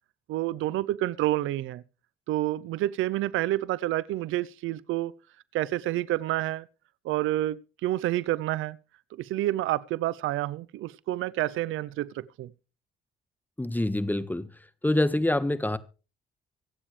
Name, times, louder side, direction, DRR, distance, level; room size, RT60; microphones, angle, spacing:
voice 1, 0.3-1.8 2.3-5.1 5.5-6.7 7.0-8.8 9.2-12.5, right 15 dB, 90° right, 0.7 m, -29 dB
voice 2, 13.6-14.5 14.8-15.8, left 1 dB, 10° left, 1.5 m, -25 dB
25.5 x 8.8 x 3.3 m
cardioid pair, 90°, 20 cm